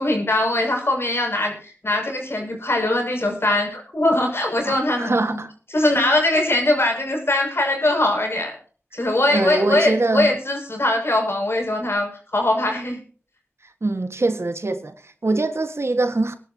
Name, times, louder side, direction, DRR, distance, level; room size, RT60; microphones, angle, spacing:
voice 1, 0.0-5.4 5.7-8.5 8.9-13.0, left 1 dB, 60° left, 6.4 m, -21 dB
voice 2, 4.6-5.5 9.3-10.3 13.8-16.4, right 2 dB, 70° right, 1.7 m, -23 dB
23.0 x 11.5 x 2.9 m
wide cardioid pair, 45°, 5 cm